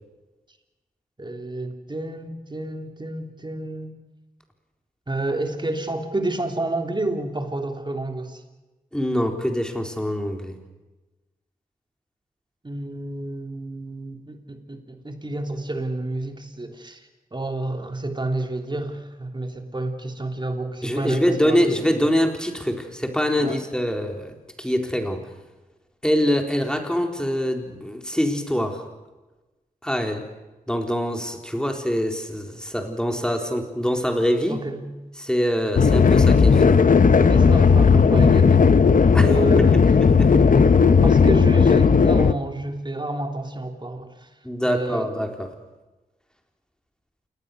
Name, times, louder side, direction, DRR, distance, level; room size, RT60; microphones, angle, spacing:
voice 1, 1.2-3.9 5.1-8.4 12.6-22.0 23.4-23.6 34.5-34.8 37.2-38.7 39.2-40.7 41.0-44.3 44.6-45.0, right 2 dB, 30° right, 5 dB, 3.3 m, -30 dB
voice 2, 8.9-10.6 20.8-25.2 26.0-28.8 29.8-30.2 30.7-34.6 35.2-36.8 39.1-39.3 40.0-40.3 44.4-45.5, equal, 5° left, 4 dB, 4.0 m, -24 dB
sound 1, 35.8-42.3, left 5 dB, 60° left, 1.1 m, -15 dB
28.0 x 19.5 x 6.7 m, 1.1 s
cardioid pair, 60°, 15 cm